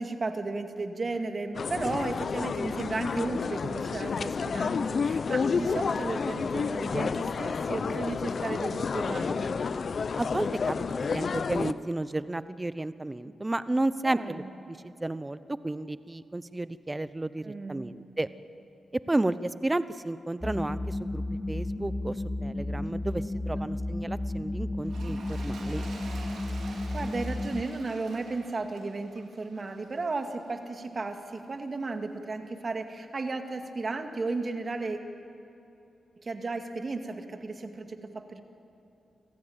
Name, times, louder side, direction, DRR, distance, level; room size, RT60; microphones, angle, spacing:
voice 1, 0.0-9.5 14.0-14.5 17.4-17.9 23.6-23.7 26.9-35.0 36.2-38.4, right 3 dB, 45° right, 6 dB, 2.2 m, -34 dB
sound 1, 1.5-11.7, left 5 dB, 60° left, 0.7 m, -30 dB
voice 2, 10.2-14.4 14.7-15.4 15.6-18.3 19.1-21.2 21.5-22.2 22.4-25.8, right 2 dB, 20° right, 15 dB, 0.9 m, -32 dB
sound 2, 20.4-27.6, left 2 dB, 10° left, 0.9 m, -33 dB
Toilet flush, 24.8-30.3 31.0-31.1, right 3 dB, 85° right, 4.5 m, -47 dB
26.0 x 15.5 x 8.8 m, 2.9 s
cardioid pair, 60°, 0 cm